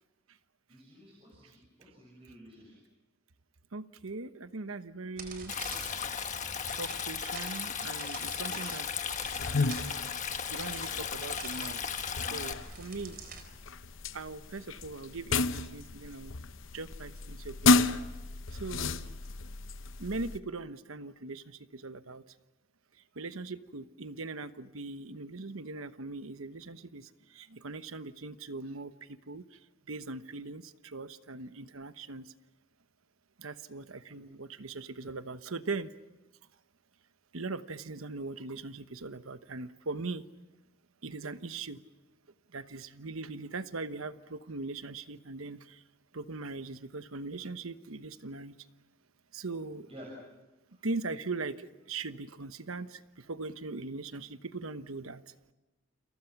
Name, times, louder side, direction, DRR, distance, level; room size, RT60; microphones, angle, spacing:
voice 1, 0.7-2.8 13.9-14.0 34.1-34.2 49.9-50.1 50.7-50.9, equal, 30° right, -2 dB, 6.3 m, -52 dB
voice 2, 3.7-5.5 6.7-8.9 10.5-13.2 14.1-16.3 16.7-17.9 18.5-19.0 20.0-22.2 23.2-29.4 29.9-32.2 33.4-35.9 37.3-40.2 41.0-41.8 42.5-45.8 46.1-48.6 49.3-49.9 50.8-55.2, right 3 dB, 85° right, 12 dB, 1.1 m, -40 dB
sound 1, 5.2-13.4, right 4 dB, 45° right, 4.1 m, -47 dB
Stream, 5.5-12.5, left 7 dB, 35° left, 1.4 m, -36 dB
sound 2, 9.2-20.4, left 3 dB, 70° left, 0.9 m, -32 dB
29.5 x 28.0 x 6.0 m, 1.1 s
head